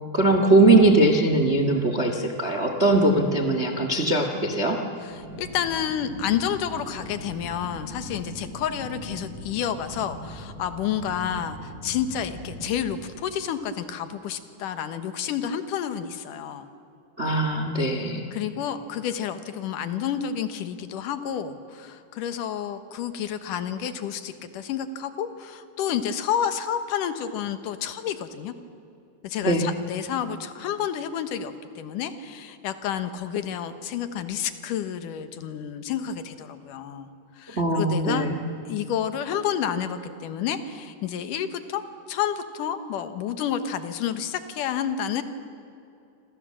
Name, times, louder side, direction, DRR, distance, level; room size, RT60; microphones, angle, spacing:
voice 1, 0.1-4.8 17.2-18.3 29.4-29.7 37.5-38.4, right 2 dB, 85° right, 5 dB, 0.6 m, -21 dB
voice 2, 5.0-16.7 18.3-28.5 29.2-37.1 37.4-38.3 38.7-41.8 42.1-45.2, left 9 dB, 65° left, 10 dB, 2.6 m, -30 dB
sound 1, 5.1-12.7, equal, 30° right, 8.8 m, -40 dB
27.5 x 26.5 x 7.6 m, 2.7 s
omnidirectional pair, 4.4 m